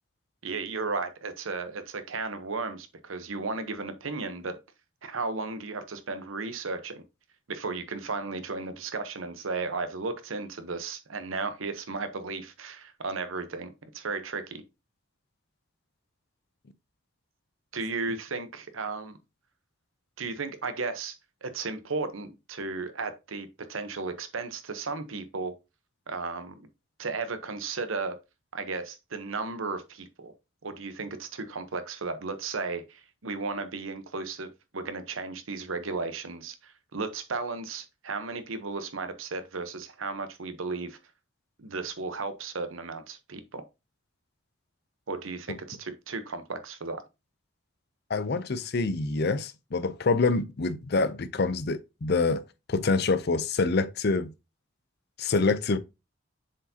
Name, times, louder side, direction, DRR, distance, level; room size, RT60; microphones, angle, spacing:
voice 1, 0.4-4.6 5.0-7.0 7.5-14.6 17.7-19.2 20.2-25.5 26.1-26.7 27.0-28.2 28.5-30.3 30.6-41.0 41.6-43.6 45.1-47.0, right 4 dB, 85° right, 0.9 m, -35 dB
voice 2, 48.1-52.4 52.7-54.3 55.2-55.8, left 3 dB, 55° left, 0.6 m, -26 dB
7.2 x 4.7 x 2.8 m
head